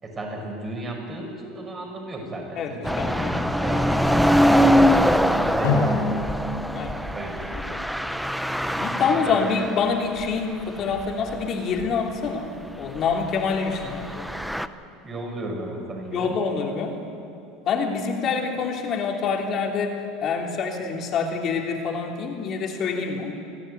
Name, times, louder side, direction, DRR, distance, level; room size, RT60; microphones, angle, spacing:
voice 1, 0.0-6.1 7.1-7.5 8.7-9.5 15.0-16.3, right 1 dB, 25° right, 1 dB, 5.8 m, -35 dB
voice 2, 2.5-3.4 6.7-7.0 7.5-7.8 8.8-14.3 16.1-17.0 17.6-23.3, left 5 dB, 45° left, 2 dB, 3.1 m, -26 dB
sound 1, 2.8-9.9 10.2-10.3 10.9-11.4 11.8-11.9 13.9-14.7, equal, ahead, 0.8 m, -22 dB
Drum, 5.6-8.3, left 3 dB, 80° left, 5.8 m, -28 dB
27.5 x 11.5 x 9.3 m, 2.6 s
supercardioid pair, 105°, 0 cm